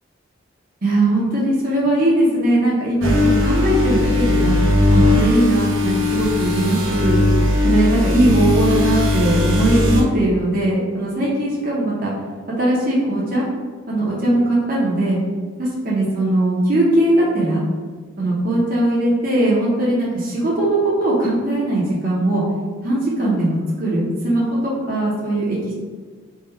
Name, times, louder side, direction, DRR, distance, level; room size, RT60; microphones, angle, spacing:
voice 1, 0.8-4.5 4.9-7.2 7.6-12.1 12.6-13.4 13.9-15.2 15.6-17.6 18.2-22.4 22.8-25.7, right 1 dB, 45° right, -6 dB, 0.9 m, -19 dB
sound 1, 3.0-10.0, left 2 dB, 70° right, 0.7 m, -18 dB
3.7 x 2.4 x 4.3 m, 1.5 s
head